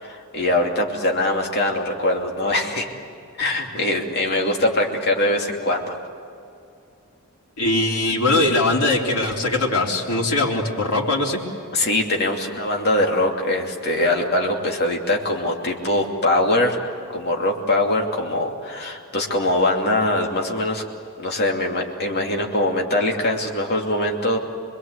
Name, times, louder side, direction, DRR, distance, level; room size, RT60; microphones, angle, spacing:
voice 1, 0.0-3.0 3.4-6.0 11.7-16.8 17.1-20.8 21.2-24.4, left 1 dB, 50° left, 1 dB, 2.8 m, -22 dB
voice 2, 7.6-11.4, left 2 dB, 85° left, -3 dB, 3.8 m, -21 dB
26.5 x 21.5 x 8.2 m, 2.6 s
head